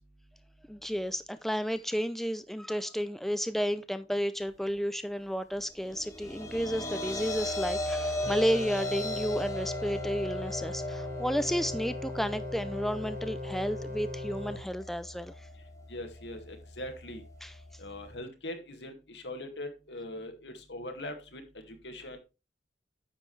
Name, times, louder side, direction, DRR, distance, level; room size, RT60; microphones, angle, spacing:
voice 1, 0.7-15.5 17.4-17.5, equal, ahead, 0.4 m, -32 dB
sound 1, 5.8-18.2, left 1 dB, 20° left, 1.7 m, -38 dB
sound 2, 8.2-14.6, left 2 dB, 50° right, 2.0 m, -39 dB
voice 2, 15.9-17.2 17.8-21.4 21.7-22.2, left 1 dB, 80° left, 2.1 m, -41 dB
9.8 x 7.5 x 3.2 m
head